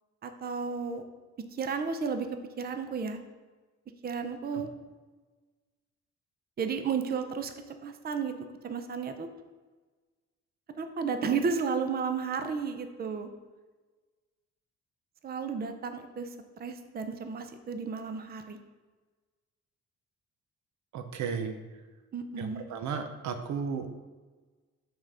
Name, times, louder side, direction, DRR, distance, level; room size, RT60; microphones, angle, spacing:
voice 1, 0.2-1.0 1.5-2.3 2.6-3.2 4.0-4.7 6.6-8.3 8.6-9.3 10.8-13.3 15.2-16.3 16.6-18.6 22.1-22.7, right 5 dB, 30° right, 8 dB, 0.6 m, -33 dB
voice 2, 20.9-21.6 22.4-24.0, right 6 dB, 70° right, 7 dB, 0.7 m, -34 dB
5.5 x 3.7 x 5.4 m, 1.3 s
cardioid pair, 90°, 30 cm